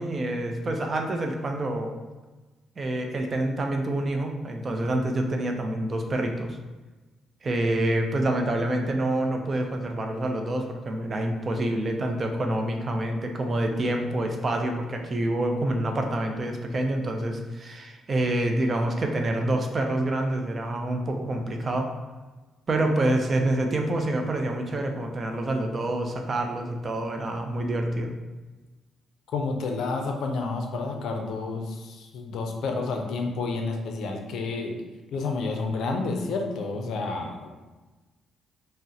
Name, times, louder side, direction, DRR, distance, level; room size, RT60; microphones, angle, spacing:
voice 1, 0.0-1.9 2.8-6.6 7.4-21.9 22.7-28.1, right 1 dB, 40° right, 4 dB, 0.4 m, -27 dB
voice 2, 29.3-34.7 35.1-37.5, left 3 dB, 75° left, 3 dB, 0.4 m, -30 dB
3.7 x 2.0 x 2.7 m, 1.2 s
cardioid pair, 90°, 0 cm